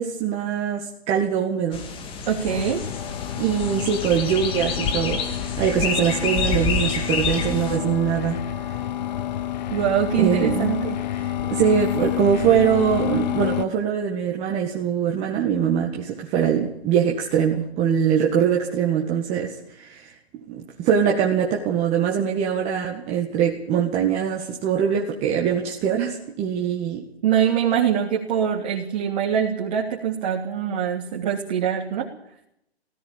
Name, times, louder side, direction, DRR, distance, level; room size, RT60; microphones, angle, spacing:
voice 1, 0.0-1.8 3.4-5.2 5.6-8.5 10.2-10.8 11.2-20.1 20.5-27.1, right 8 dB, 20° right, 0 dB, 1.9 m, -23 dB
sound 1, 1.7-7.8, left 5 dB, 15° left, 2.0 m, -28 dB
voice 2, 2.3-2.8 9.7-11.0 27.2-32.1, right 8 dB, 40° right, -1 dB, 3.3 m, -23 dB
sound 2, 2.5-13.7, left 12 dB, 40° left, 1.2 m, -29 dB
18.5 x 16.5 x 8.7 m, 0.77 s
hypercardioid pair, 145°, 33 cm